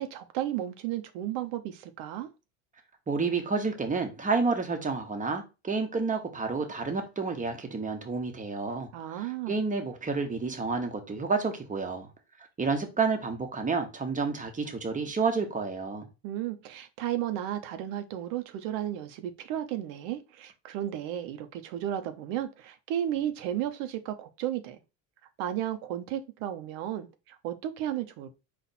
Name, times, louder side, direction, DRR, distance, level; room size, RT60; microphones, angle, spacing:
voice 1, 0.0-2.3 8.9-9.6 16.2-24.8 25.4-28.3, right 11 dB, 80° right, 0.9 m, -33 dB
voice 2, 3.1-12.1 12.6-16.1, right 4 dB, 20° right, 1.0 m, -30 dB
4.3 x 2.5 x 4.1 m
supercardioid pair, 105°, 42 cm